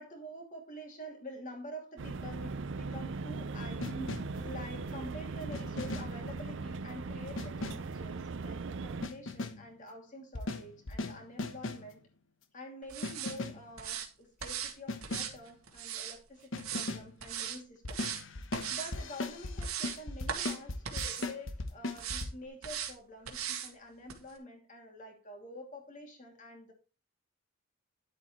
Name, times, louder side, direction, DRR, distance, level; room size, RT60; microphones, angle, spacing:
voice 1, 0.0-4.1 4.4-12.0 12.5-18.0 18.7-26.7, equal, 35° left, 2.7 m, -47 dB
sound 1, 2.0-9.1, right 3 dB, 60° right, 0.5 m, -39 dB
sound 2, 3.8-4.5 5.5-6.3 7.4-8.0 9.0-9.7 10.3-11.9 13.0-13.7 14.9-15.4 16.5-17.1 17.8-22.3, left 2 dB, 60° left, 1.1 m, -38 dB
sound 3, 12.9-13.3 13.8-14.1 14.4-14.7 15.0-16.2 16.6-16.9 17.2-17.6 17.9-18.2 18.5-18.9 19.3-20.0 20.3-20.6 20.8-21.3 21.9-22.3 22.6-22.9 23.3-23.7 24.1-24.2, right 9 dB, 90° right, 2.0 m, -38 dB
11.0 x 8.0 x 3.1 m
head